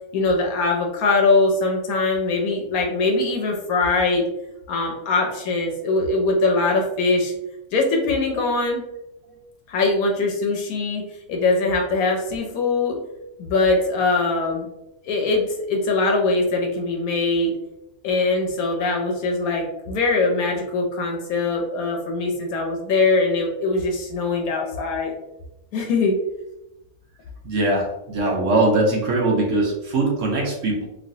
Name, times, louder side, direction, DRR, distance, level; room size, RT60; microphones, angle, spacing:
voice 1, 0.1-4.3 4.7-7.3 7.7-8.8 9.7-11.0 11.3-13.0 13.4-14.7 15.1-17.5 18.0-25.1 25.7-26.2, left 3 dB, 75° left, 1 dB, 1.0 m, -22 dB
voice 2, 27.4-30.9, right 2 dB, 65° right, -1 dB, 0.9 m, -21 dB
3.1 x 2.5 x 2.6 m, 0.89 s
omnidirectional pair, 1.6 m